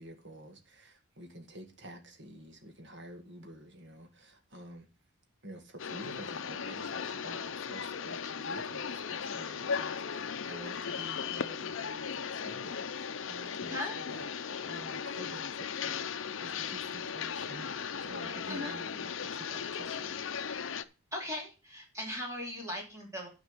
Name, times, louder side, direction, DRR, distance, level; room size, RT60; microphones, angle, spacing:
voice 1, 0.0-4.9 5.4-14.3 14.6-20.2, right 1 dB, 55° right, 2.1 m, -49 dB
sound 1, 5.8-20.8, left 6 dB, 60° left, 0.6 m, -37 dB
voice 2, 21.1-23.3, left 1 dB, 15° right, 2.9 m, -38 dB
9.9 x 5.2 x 6.8 m
head